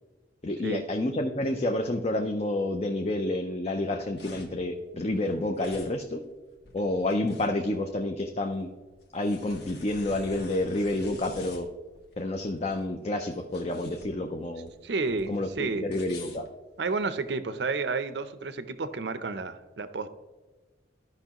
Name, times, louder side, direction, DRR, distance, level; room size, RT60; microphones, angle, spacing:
voice 1, 0.4-6.2 6.7-8.7 9.1-11.7 12.2-14.7 15.3-16.4, left 1 dB, 35° left, 4 dB, 0.5 m, -29 dB
sound 1, 4.2-17.3, left 2 dB, 60° left, 1.5 m, -49 dB
voice 2, 14.8-15.9 16.8-20.1, right 3 dB, 70° right, 12 dB, 0.6 m, -31 dB
13.5 x 5.5 x 2.9 m, 1.3 s
head